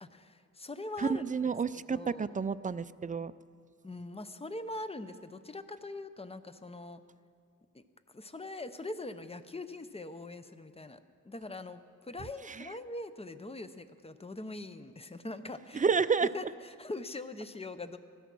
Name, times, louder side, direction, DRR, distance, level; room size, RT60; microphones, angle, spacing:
voice 1, 0.0-1.3 1.7-2.4 3.8-7.0 7.7-7.8 8.1-11.0 11.2-15.8 16.2-18.0, left 2 dB, 20° left, 11 dB, 0.7 m, -42 dB
voice 2, 1.0-3.3 12.5-12.6 15.7-16.3, right 5 dB, 25° right, 15 dB, 0.4 m, -30 dB
16.5 x 13.0 x 6.1 m, 2.2 s
wide cardioid pair, 90°, 31 cm